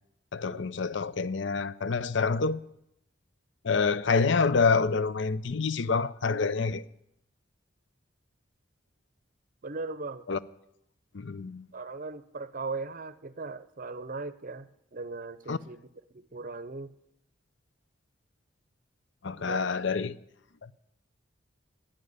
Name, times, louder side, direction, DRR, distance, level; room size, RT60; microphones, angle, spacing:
voice 1, 0.3-2.6 3.6-6.8 10.3-10.4 11.1-11.7 15.5-15.6 19.2-20.1 20.6-20.7, left 4 dB, 65° left, 0.6 m, -27 dB
voice 2, 9.6-10.2 11.7-15.9 16.1-16.9 19.4-19.8, right 3 dB, 45° right, 0.7 m, -38 dB
10.5 x 9.0 x 9.6 m
head